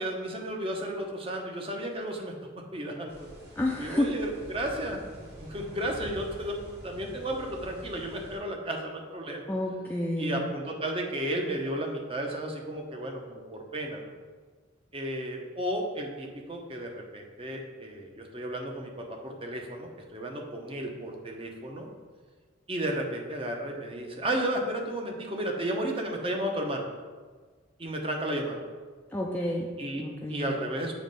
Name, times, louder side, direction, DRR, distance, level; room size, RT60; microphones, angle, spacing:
voice 1, 0.0-2.3 2.7-3.3 3.8-5.0 5.3-9.4 10.2-14.1 14.9-21.9 22.7-26.9 27.8-28.6 29.8-30.0 30.3-30.9, right 1 dB, 25° right, 1 dB, 0.8 m, -33 dB
sound 1, 3.1-8.4, equal, 55° right, 1.9 m, -46 dB
voice 2, 3.6-4.1 9.5-10.4 29.1-29.7 30.0-30.5, left 1 dB, 10° left, -2 dB, 0.4 m, -30 dB
7.2 x 3.1 x 5.3 m, 1.5 s
head